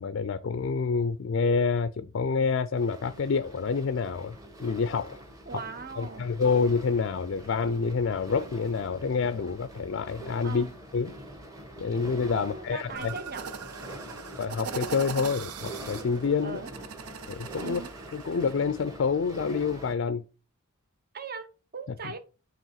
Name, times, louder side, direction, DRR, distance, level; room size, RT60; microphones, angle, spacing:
voice 1, 0.0-5.2 6.0-11.1 11.8-13.1 14.4-16.6 17.3-17.8 18.1-20.2, left 5 dB, 55° left, 0.4 m, -28 dB
sound 1, 2.8-19.9, right 1 dB, 15° right, 1.2 m, -44 dB
voice 2, 5.4-6.3 10.4-10.7 12.3-13.4 16.4-16.7 17.6-17.9 21.1-21.5 21.7-22.2, right 4 dB, 45° right, 0.9 m, -39 dB
sound 2, 13.0-18.6, right 6 dB, 85° right, 0.7 m, -40 dB
7.3 x 3.0 x 5.7 m
head